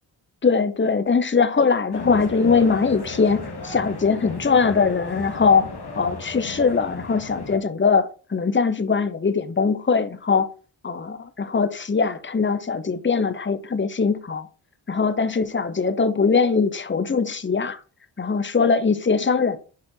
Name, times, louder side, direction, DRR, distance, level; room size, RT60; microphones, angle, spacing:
voice 1, 0.4-5.7 6.0-10.5 10.8-14.5 14.9-17.8 18.2-19.6, left 5 dB, 25° left, 0.9 m, -21 dB
sound 1, 1.9-7.6, left 3 dB, 50° left, 2.0 m, -36 dB
7.1 x 5.2 x 3.8 m
cardioid pair, 45°, 48 cm